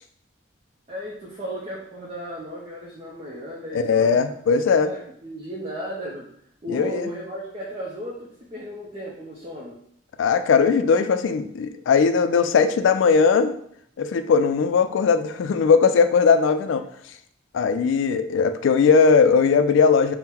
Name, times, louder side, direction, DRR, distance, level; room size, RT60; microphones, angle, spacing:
voice 1, 0.9-4.2 4.5-6.3 6.6-9.8, equal, 30° right, -4 dB, 0.5 m, -35 dB
voice 2, 3.7-4.9 6.7-7.1 10.2-13.5 14.0-16.8 17.5-20.2, left 5 dB, 75° left, 10 dB, 0.3 m, -19 dB
3.7 x 2.0 x 4.2 m, 0.68 s
head